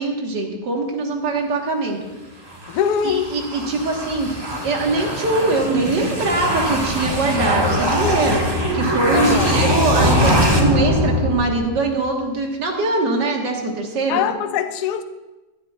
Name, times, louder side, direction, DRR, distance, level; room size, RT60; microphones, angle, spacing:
voice 1, 0.0-2.0 3.0-4.3 4.6-8.4 8.7-14.2, right 3 dB, 90° right, 1 dB, 2.2 m, -22 dB
Reverberant Zombies, 2.5-11.9, equal, 15° right, 1.4 m, -21 dB
voice 2, 2.7-3.3 9.1-9.6 14.1-15.0, left 9 dB, 75° left, 9 dB, 1.2 m, -22 dB
16.5 x 11.5 x 2.4 m, 1.1 s
omnidirectional pair, 1.8 m